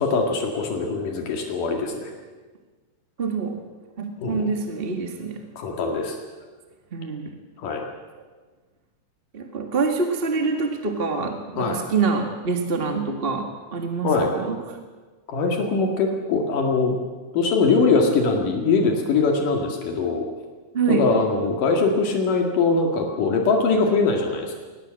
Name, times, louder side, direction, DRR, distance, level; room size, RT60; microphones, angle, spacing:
voice 1, 0.0-2.1 4.2-4.5 5.6-6.2 7.6-7.8 11.6-11.8 14.0-14.3 15.3-17.0 17.3-20.3 20.9-24.6, left 4 dB, 80° left, 2 dB, 3.7 m, -22 dB
voice 2, 3.2-3.6 4.0-5.4 6.9-7.2 9.3-14.8 20.7-21.1, right 4 dB, 25° right, 4 dB, 1.3 m, -26 dB
22.5 x 19.5 x 7.6 m, 1.4 s
omnidirectional pair, 3.8 m